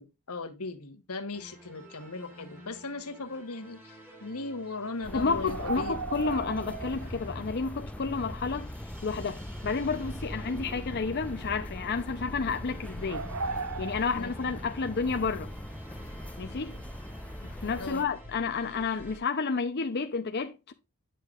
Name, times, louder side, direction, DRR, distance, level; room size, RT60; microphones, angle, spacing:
voice 1, 0.0-6.0 14.2-14.3 17.7-18.0, left 3 dB, 85° left, 1.3 m, -38 dB
sound 1, 1.3-19.2, equal, 10° right, 2.4 m, -49 dB
sound 2, 5.0-18.0, left 1 dB, 5° left, 0.5 m, -41 dB
voice 2, 5.1-8.7 9.0-13.3 13.8-15.5 16.4-16.8 17.6-20.7, left 4 dB, 50° left, 0.6 m, -31 dB
sound 3, 5.4-7.2 7.5-7.6 10.1-10.8 11.2-11.5 13.0-14.5, right 4 dB, 80° right, 0.9 m, -37 dB
9.2 x 6.6 x 2.4 m
head